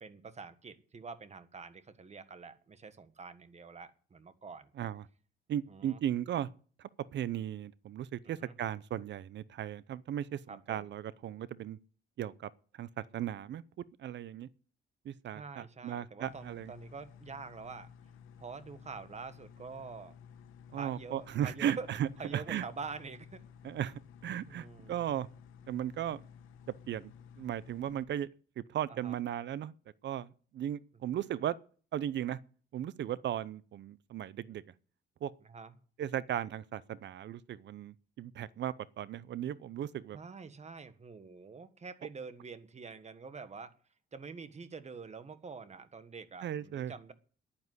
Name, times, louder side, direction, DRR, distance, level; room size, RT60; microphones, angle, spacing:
voice 1, 0.0-4.7 5.7-6.0 8.2-8.6 10.5-10.9 15.3-17.9 18.4-20.2 20.7-21.9 22.2-23.4 24.4-25.1 28.9-29.1 35.4-35.8 40.1-43.7 44.1-47.1, right 5 dB, 35° right, 1.5 m, -46 dB
voice 2, 5.5-6.5 6.8-11.8 12.2-12.5 12.8-13.6 14.0-14.5 15.0-16.7 20.7-22.6 23.6-23.9 24.2-25.3 25.7-26.2 26.9-27.1 27.4-28.3 28.6-29.7 30.0-31.6 31.9-32.4 32.7-34.6 35.2-35.3 36.0-40.2 46.4-46.9, right 10 dB, 65° right, 0.7 m, -36 dB
sound 1, 16.2-28.0, left 7 dB, 90° left, 1.5 m, -54 dB
10.5 x 9.7 x 9.6 m
cardioid pair, 90°, 20 cm